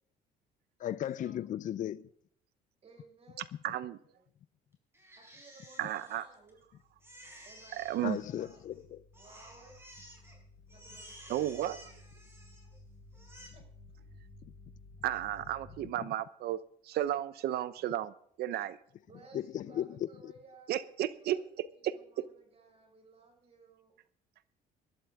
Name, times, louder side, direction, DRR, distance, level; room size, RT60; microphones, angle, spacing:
voice 1, 0.8-2.1 8.0-9.0 14.4-14.5 19.3-20.3, left 11 dB, 50° left, 0.5 m, -36 dB
voice 2, 2.8-3.4 5.1-6.6 7.4-7.8 8.4-8.5 9.2-9.8 10.7-11.6 12.2-12.3 13.5-13.6 19.1-20.9 21.2-21.4 21.9-24.0, right 3 dB, 35° right, 5.5 m, -58 dB
voice 3, 3.4-4.2 5.8-6.3 7.7-8.2 11.3-11.9 15.0-18.8 20.7-22.3, right 12 dB, 70° right, 0.9 m, -34 dB
Crying sobbing, 4.9-6.6 7.0-8.8 9.1-10.4 10.7-12.8 13.1-13.5, equal, 15° right, 5.4 m, -54 dB
sound 1, 6.5-15.9, left 2 dB, 5° left, 3.4 m, -56 dB
20.0 x 12.0 x 3.7 m
cardioid pair, 110°, 17 cm